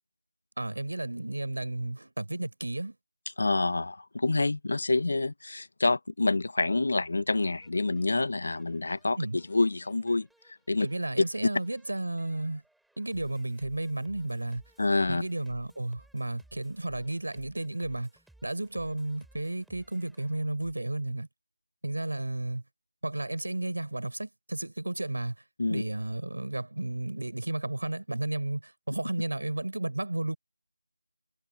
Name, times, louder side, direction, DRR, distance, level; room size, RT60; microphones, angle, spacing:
voice 1, 0.6-3.0 9.2-9.4 10.8-12.6 13.0-14.6 15.1-18.1 18.4-21.3 21.8-22.6 23.0-25.4 25.7-30.4, right 2 dB, 70° right, 5.6 m, -33 dB
voice 2, 3.4-10.3 10.7-10.9 14.8-15.2 25.6-25.8, left 3 dB, 50° left, 1.6 m, -27 dB
sound 1, 7.6-20.7, right 1 dB, ahead, 5.9 m, -63 dB
figure-of-eight pair, 170°, 0 cm